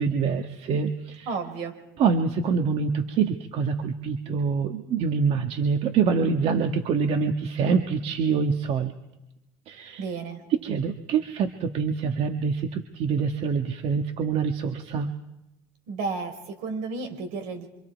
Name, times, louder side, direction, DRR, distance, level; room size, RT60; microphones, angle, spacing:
voice 1, 0.0-1.3 2.0-8.9 9.7-10.0 10.6-15.1, right 5 dB, 60° right, 6 dB, 1.7 m, -25 dB
voice 2, 1.2-1.8 10.0-10.4 15.9-17.7, right 4 dB, 80° right, 6 dB, 4.8 m, -32 dB
27.5 x 26.0 x 4.7 m, 0.90 s
supercardioid pair, 95°, 12 cm